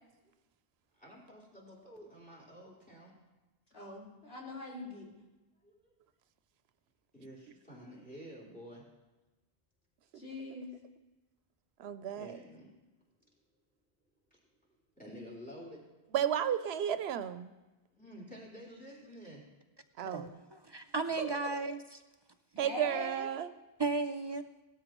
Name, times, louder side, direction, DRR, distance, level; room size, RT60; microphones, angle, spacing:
voice 1, 1.0-3.1 5.6-5.9 7.1-8.8 12.1-12.7 15.0-15.8 17.9-19.4, equal, 10° left, -5 dB, 3.9 m, -50 dB
voice 2, 3.7-5.1 10.1-10.7 21.2-21.3 22.6-23.3, left 1 dB, 75° left, -4 dB, 2.8 m, -42 dB
voice 3, 11.8-12.4 16.1-17.5 20.0-20.4 22.6-23.5, right 9 dB, 90° right, 12 dB, 0.8 m, -33 dB
voice 4, 20.5-22.0 23.8-24.4, right 4 dB, 40° right, 8 dB, 0.4 m, -35 dB
18.0 x 13.0 x 3.0 m, 1.1 s
omnidirectional pair, 1.0 m